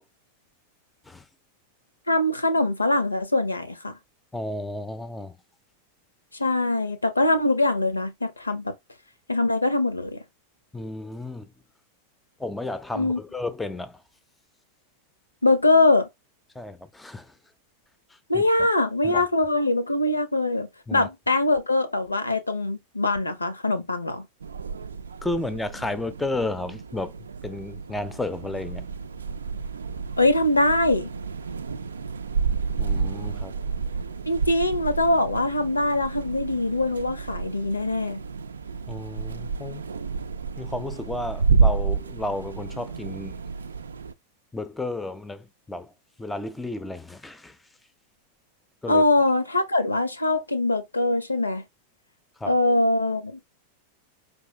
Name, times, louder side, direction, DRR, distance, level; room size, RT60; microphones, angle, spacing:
voice 1, 2.1-4.0 6.3-8.7 9.3-10.2 12.9-13.2 15.4-16.1 18.3-24.3 30.2-31.1 34.3-38.2 48.9-51.6 52.4-53.4, left 2 dB, 80° left, 0.8 m, -23 dB
voice 2, 4.3-5.4 10.7-11.5 12.4-14.0 16.5-17.4 18.1-18.5 19.0-19.3 20.9-21.1 25.2-27.2 27.4-28.9 32.8-33.5 38.9-39.9 40.6-43.4 44.5-45.9 46.2-47.6 48.8-49.0 52.4-52.6, left 2 dB, 10° left, 0.5 m, -33 dB
sound 1, 24.4-44.1, right 5 dB, 70° right, 0.4 m, -30 dB
4.9 x 3.1 x 3.3 m
figure-of-eight pair, 90°, 0 cm